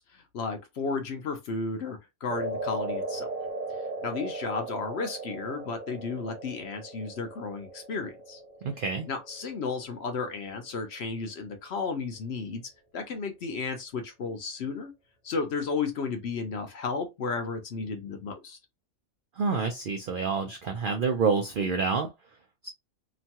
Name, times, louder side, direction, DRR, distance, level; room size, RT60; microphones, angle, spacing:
voice 1, 0.0-3.4 4.0-8.4 9.1-12.6 12.9-14.9 15.2-18.6, left 4 dB, 60° left, 0.8 m, -33 dB
sound 1, 2.3-10.6, right 2 dB, 45° right, 0.7 m, -37 dB
voice 2, 8.6-9.1 19.4-22.1 22.6-22.7, right 5 dB, 85° right, 0.4 m, -27 dB
3.0 x 2.2 x 2.7 m
omnidirectional pair, 1.5 m